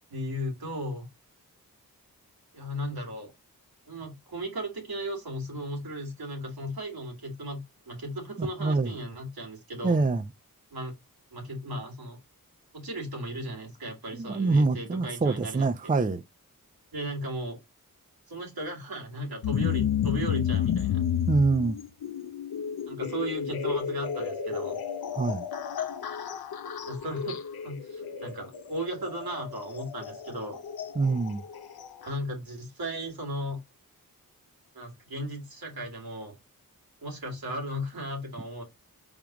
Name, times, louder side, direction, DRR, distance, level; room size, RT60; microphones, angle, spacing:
voice 1, 0.1-1.1 2.5-3.3 3.9-10.0 10.7-10.9 11.3-12.2 12.7-15.7 16.9-17.6 18.3-21.0 22.9-24.8 26.9-27.4 27.6-30.6 32.0-33.6 34.7-36.3 37.0-38.6, equal, 80° right, 1.9 m, -36 dB
voice 2, 8.4-8.9 9.8-10.2 14.1-16.2 21.3-21.8 25.1-25.4 31.0-31.4, right 3 dB, 25° right, 0.5 m, -25 dB
sound 1, 19.4-32.1, left 8 dB, 90° left, 0.6 m, -32 dB
4.8 x 3.6 x 2.9 m
cardioid pair, 45°, 36 cm